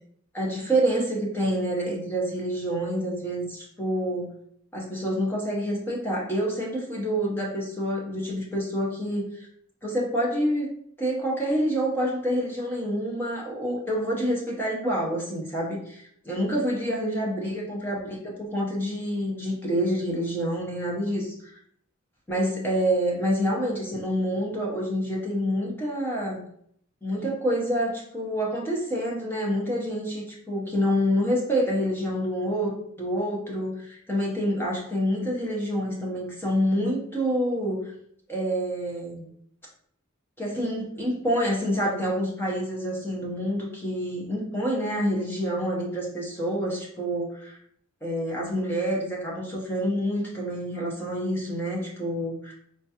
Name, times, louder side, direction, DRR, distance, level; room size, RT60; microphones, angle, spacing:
voice 1, 0.3-4.3 4.7-9.5 9.8-10.7 11.0-21.3 22.3-26.4 27.0-37.9 38.3-39.3 40.4-47.6 48.0-52.5, equal, 10° left, -4 dB, 0.6 m, -27 dB
4.4 x 2.3 x 2.8 m, 0.67 s
head